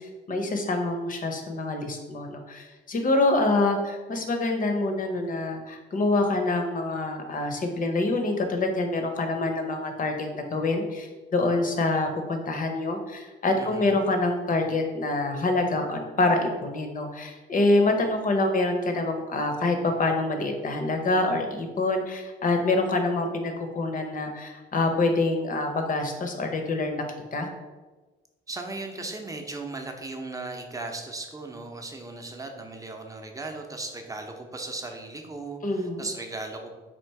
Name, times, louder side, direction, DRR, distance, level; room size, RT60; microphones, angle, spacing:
voice 1, 0.0-27.0 27.3-27.5 35.6-36.1, left 2 dB, 45° left, 5 dB, 0.8 m, -26 dB
voice 2, 13.5-14.0 28.5-36.8, right 2 dB, 15° right, 3 dB, 0.7 m, -37 dB
4.4 x 2.4 x 4.6 m, 1.2 s
cardioid pair, 90°, 20 cm